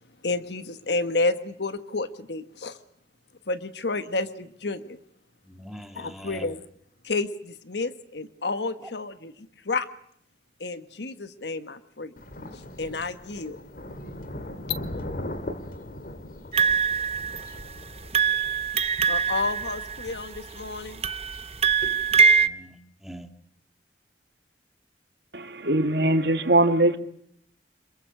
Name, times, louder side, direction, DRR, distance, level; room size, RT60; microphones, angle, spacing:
voice 1, 0.2-2.8 3.5-5.0 5.9-6.6 7.0-9.3 9.6-9.9 10.6-12.1 12.5-13.6 19.1-21.0, left 3 dB, 75° left, 1.4 m, -30 dB
voice 2, 5.5-6.6 8.8-8.9 22.4-23.3, equal, ahead, 1.9 m, -42 dB
Thunder, 12.2-22.1, left 1 dB, 55° left, 2.4 m, -40 dB
sound 1, 16.5-17.7 18.1-20.4 21.0-22.5, right 5 dB, 35° right, 0.9 m, -23 dB
voice 3, 25.3-27.0, right 1 dB, 70° right, 2.3 m, -21 dB
27.5 x 22.5 x 6.7 m
head